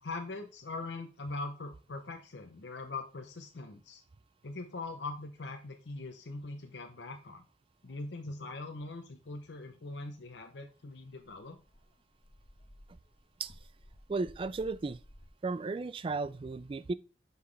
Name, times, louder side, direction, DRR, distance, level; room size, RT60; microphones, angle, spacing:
voice 1, 0.0-4.0 4.4-7.4 7.8-11.6, left 3 dB, 80° left, 0.8 m, -42 dB
Dog, 10.7-10.8 11.1-15.3, equal, 40° left, 1.1 m, -57 dB
voice 2, 14.1-15.0 15.4-16.9, right 3 dB, 30° right, 0.3 m, -34 dB
5.9 x 5.7 x 3.2 m
head